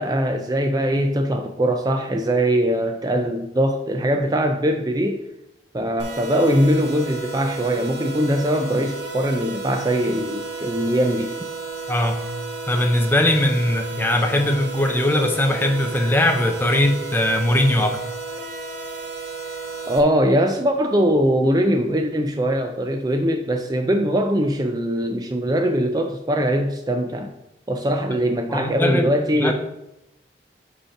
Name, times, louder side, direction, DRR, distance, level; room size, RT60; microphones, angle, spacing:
voice 1, 0.0-5.2 5.7-11.4 19.9-27.3 27.7-29.5, equal, 20° right, 5 dB, 0.4 m, -21 dB
sound 1, 6.0-20.0, right 4 dB, 65° right, 1.3 m, -33 dB
voice 2, 11.9-12.3 12.7-18.0 28.5-29.5, left 1 dB, 10° left, 4 dB, 0.7 m, -20 dB
5.1 x 5.0 x 5.8 m, 0.87 s
head